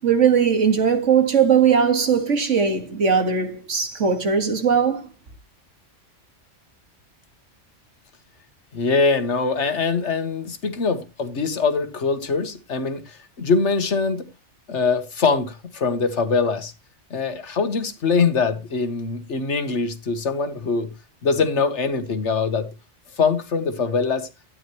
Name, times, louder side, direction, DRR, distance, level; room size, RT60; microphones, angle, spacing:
voice 1, 0.0-5.1, right 6 dB, 80° right, 2.1 m, -19 dB
voice 2, 8.7-14.2 14.7-16.7 17.1-20.9 21.2-22.7 23.2-24.3, left 4 dB, 70° left, 1.6 m, -23 dB
12.5 x 9.8 x 3.0 m
omnidirectional pair, 1.2 m